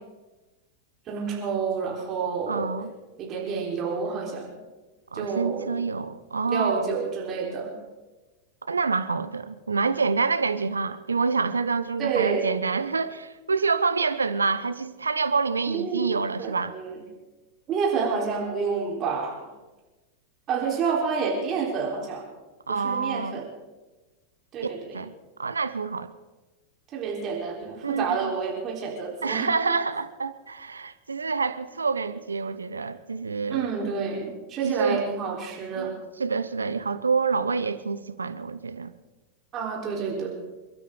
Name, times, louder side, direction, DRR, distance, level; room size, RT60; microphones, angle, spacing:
voice 1, 1.1-2.7 3.2-4.6 5.1-5.8 6.5-7.8 12.0-12.5 15.7-16.1 16.4-17.0 17.7-19.5 20.5-22.2 22.7-23.5 24.5-25.0 26.9-29.5 33.5-35.9 39.5-40.3, right 5 dB, 30° right, 4.0 m, -29 dB
voice 2, 2.5-2.9 5.1-6.9 8.7-16.7 22.7-23.4 24.6-25.1 25.4-26.1 27.8-28.3 29.2-33.7 34.6-35.0 35.8-35.9 36.2-38.9, right 4 dB, 75° right, 0.7 m, -27 dB
28.5 x 12.5 x 3.9 m
figure-of-eight pair, 90°, 0 cm